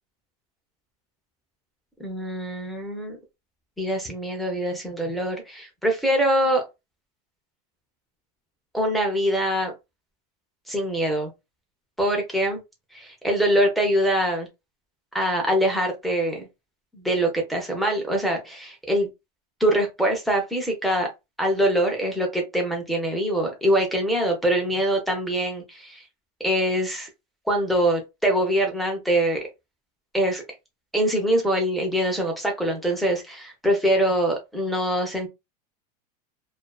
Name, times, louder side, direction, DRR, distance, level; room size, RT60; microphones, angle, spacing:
voice 1, 2.0-3.2 3.8-6.6 8.7-9.7 10.7-11.3 12.0-12.6 12.9-14.5 15.1-16.5 16.9-19.1 19.6-21.1 21.4-26.0 26.4-27.1 27.5-29.4 30.1-30.4 30.9-35.3, right 1 dB, ahead, 0.5 m, -24 dB
2.4 x 2.4 x 2.2 m
supercardioid pair, 165°, 21 cm